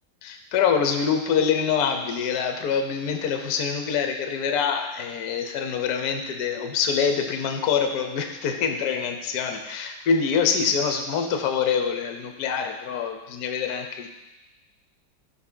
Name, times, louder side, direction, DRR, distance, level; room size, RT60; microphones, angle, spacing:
voice 1, 0.2-14.1, left 6 dB, 60° left, 5 dB, 1.1 m, -25 dB
16.0 x 6.1 x 2.2 m, 1.1 s
omnidirectional pair, 2.1 m